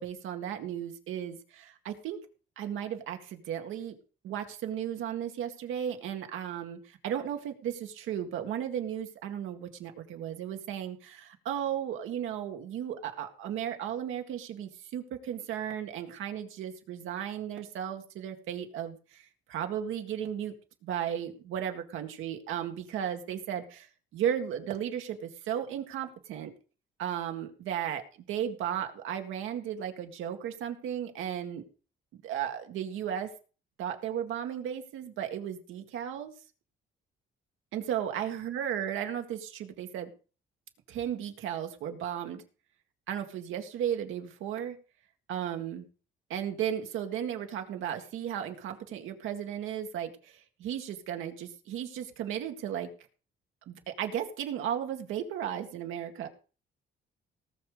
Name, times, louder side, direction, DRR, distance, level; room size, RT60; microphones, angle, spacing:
voice 1, 0.0-2.3 2.6-4.0 4.2-20.5 20.8-26.5 27.0-31.6 32.1-33.3 33.8-36.3 37.7-40.1 40.9-42.4 43.1-44.8 45.3-45.9 46.3-52.9 53.7-56.3, right 9 dB, 85° right, 5 dB, 2.0 m, -35 dB
18.5 x 6.4 x 5.1 m, 0.37 s
cardioid pair, 90°, 20 cm